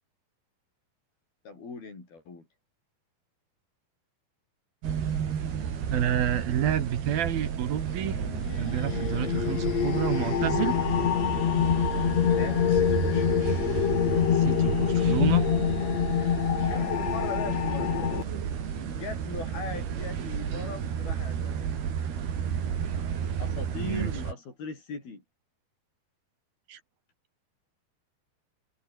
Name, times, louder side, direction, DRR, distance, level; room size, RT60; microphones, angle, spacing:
voice 1, 1.4-2.5 12.3-13.5 16.7-18.4 18.7-21.7 23.4-25.2, left 4 dB, 75° left, 9.5 m, -39 dB
sound 1, 4.8-24.3, right 8 dB, 90° right, 5.2 m, -32 dB
voice 2, 5.9-8.2 8.6-10.8 14.4-15.5 23.8-24.1 26.7-26.8, right 10 dB, 70° right, 3.7 m, -29 dB
sound 2, 8.0-18.2, left 9 dB, 55° left, 2.4 m, -26 dB
omnidirectional pair, 4.4 m